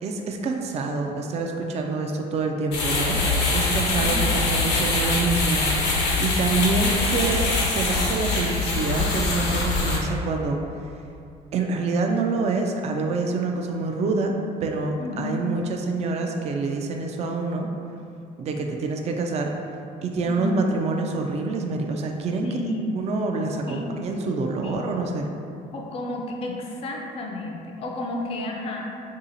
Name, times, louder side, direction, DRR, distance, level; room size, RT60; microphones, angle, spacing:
voice 1, 0.0-5.7 6.2-10.6 11.5-14.3 14.6-17.7 18.4-19.5 20.0-22.5 22.9-25.3, right 3 dB, 40° right, 2 dB, 0.3 m, -26 dB
sound 1, 2.7-10.0, left 3 dB, 85° left, 0.8 m, -23 dB
voice 2, 4.0-4.5 14.9-15.4 20.3-20.7 22.4-23.0 23.7-24.1 24.6-24.8 25.7-28.8, left 1 dB, 35° left, 0 dB, 0.4 m, -31 dB
2.7 x 2.7 x 3.9 m, 2.6 s
cardioid pair, 110°, 17 cm